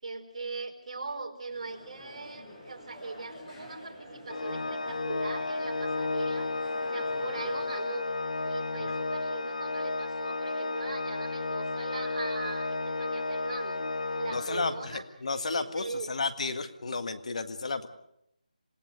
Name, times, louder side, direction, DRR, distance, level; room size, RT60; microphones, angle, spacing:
voice 1, 0.0-6.5 6.9-8.1 8.4-13.9 14.1-15.0 15.5-16.1, right 3 dB, 50° right, 2 dB, 4.5 m, -40 dB
sound 1, 1.5-7.9, left 1 dB, 15° left, 7.2 m, -48 dB
Organ, 4.3-15.0, left 3 dB, 70° left, 1.1 m, -33 dB
voice 2, 14.3-17.9, left 3 dB, 55° left, 9 dB, 1.8 m, -32 dB
27.5 x 18.5 x 6.7 m, 0.78 s
figure-of-eight pair, 160°, 4 cm